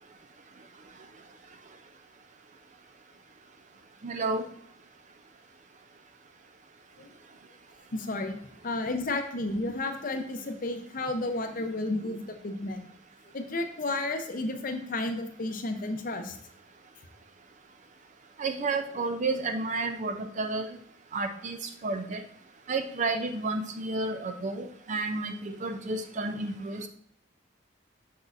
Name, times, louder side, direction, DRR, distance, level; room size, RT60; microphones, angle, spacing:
voice 1, 4.0-4.4 18.4-20.8 21.1-22.2 22.7-26.9, right 3 dB, 35° right, 7 dB, 0.5 m, -31 dB
voice 2, 7.9-8.4 8.6-12.8 13.3-16.4, left 2 dB, 45° left, 6 dB, 0.7 m, -32 dB
6.3 x 5.9 x 2.6 m, 0.68 s
head